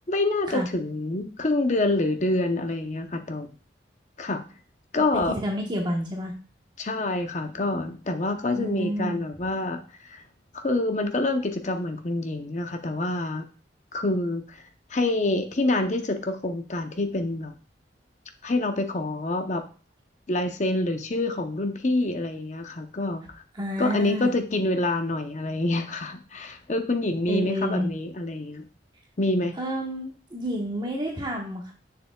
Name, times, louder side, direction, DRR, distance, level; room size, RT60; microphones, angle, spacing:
voice 1, 0.1-3.5 4.2-4.4 4.9-5.3 6.8-10.2 10.5-13.5 13.9-14.6 14.9-17.5 18.4-19.6 20.3-23.3 23.8-28.7 29.2-29.5, left 2 dB, 40° left, 6 dB, 0.7 m, -26 dB
voice 2, 5.1-6.3 8.5-9.2 23.5-24.3 27.3-27.9 29.6-31.7, equal, 25° right, 1 dB, 1.0 m, -30 dB
6.8 x 6.6 x 2.3 m, 0.39 s
head